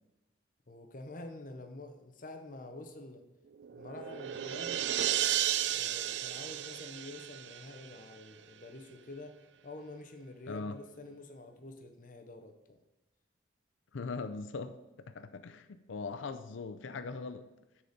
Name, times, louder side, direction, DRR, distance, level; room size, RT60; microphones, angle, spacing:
voice 1, 0.7-3.2 3.7-4.9 5.7-9.4 9.6-12.8, left 2 dB, 45° left, 0.8 m, -47 dB
sound 1, 3.5-8.1, right 12 dB, 65° right, 0.3 m, -34 dB
voice 2, 13.9-14.8 15.1-17.5, left 4 dB, 80° left, 0.5 m, -40 dB
10.0 x 4.2 x 6.5 m
head